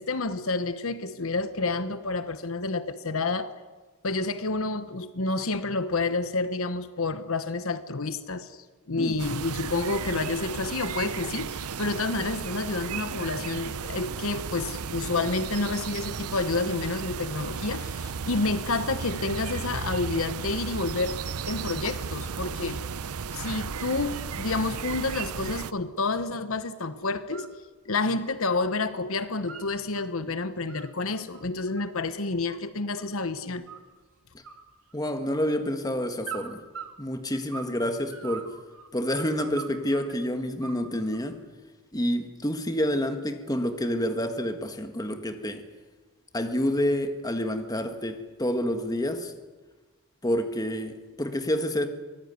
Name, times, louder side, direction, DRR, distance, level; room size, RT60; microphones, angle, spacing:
voice 1, 0.0-3.5 4.0-21.2 21.5-22.8 23.3-27.5 27.9-33.6, left 3 dB, 65° left, 1.1 m, -29 dB
sound 1, 9.2-25.7, right 6 dB, 85° right, 0.7 m, -34 dB
sound 2, 27.1-27.5 27.9-28.8 29.1-30.0 30.5-33.2 33.7-34.1 34.4-35.4 36.2-37.8 38.1-40.1 40.6-41.3, right 7 dB, 70° right, 3.0 m, -42 dB
voice 2, 34.9-36.6 37.0-38.5 38.9-41.4 41.9-45.6 46.3-49.3 50.2-51.9, equal, 15° left, 1.7 m, -28 dB
24.5 x 18.5 x 9.6 m
head